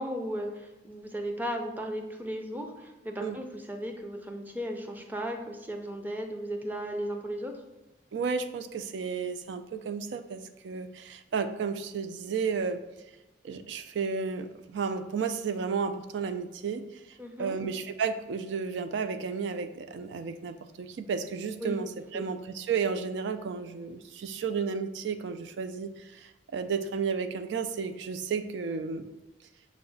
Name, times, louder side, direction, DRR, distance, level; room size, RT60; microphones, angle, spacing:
voice 1, 0.0-7.6 17.2-17.6 21.6-21.8 22.1-22.2, equal, 10° right, 3 dB, 0.4 m, -36 dB
voice 2, 8.1-12.8 13.4-16.9 17.4-29.1, right 5 dB, 80° right, 10 dB, 0.4 m, -32 dB
5.7 x 2.1 x 3.8 m, 1.1 s
head